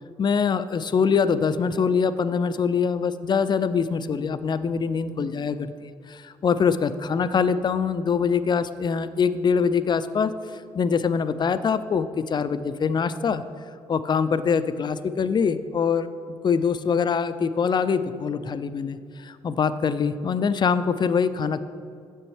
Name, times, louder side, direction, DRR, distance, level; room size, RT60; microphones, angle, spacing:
voice 1, 0.2-10.3 10.7-13.4 13.9-16.1 16.4-21.6, left 6 dB, 30° left, 13 dB, 0.3 m, -24 dB
7.6 x 6.2 x 3.1 m, 2.4 s
hypercardioid pair, 50°, 14 cm